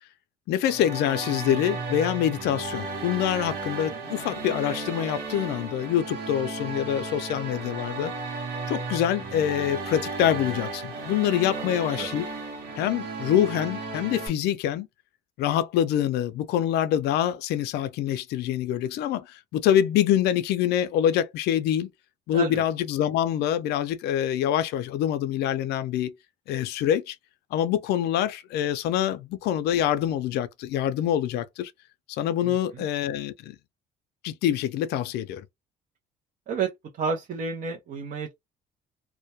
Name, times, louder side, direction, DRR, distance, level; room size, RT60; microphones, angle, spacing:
voice 1, 0.5-8.1 8.7-12.3 12.8-14.9 15.4-21.9 22.3-26.1 26.5-27.2 27.5-31.7 32.1-33.6 34.2-35.4, left 10 dB, 75° left, 0.4 m, -25 dB
sound 1, 0.6-14.3, right 3 dB, 90° right, 1.0 m, -34 dB
voice 2, 22.3-22.6 32.4-32.8 36.5-36.7 37.0-38.3, right 5 dB, 50° right, 0.6 m, -31 dB
2.2 x 2.1 x 2.7 m
cardioid pair, 110°, 17 cm